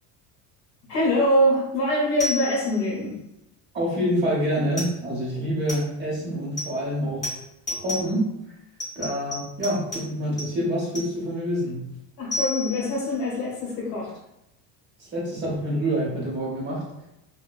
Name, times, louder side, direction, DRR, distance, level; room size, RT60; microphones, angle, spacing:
voice 1, 0.9-3.1 12.2-14.1, equal, 55° left, -6 dB, 0.9 m, -23 dB
sound 1, 2.2-2.8 4.8-4.9 5.7-5.8 6.6-6.7 7.2-7.4 7.7-8.1 8.8-9.4 9.6-10.0 10.4-10.5 10.9-11.0 12.3-13.1, left 1 dB, 20° left, 0.7 m, -30 dB
voice 2, 3.7-7.3 7.7-8.3 8.9-11.9 15.0-16.8, equal, 25° right, -5 dB, 0.8 m, -27 dB
2.8 x 2.2 x 2.2 m, 0.87 s
cardioid pair, 175°, 41 cm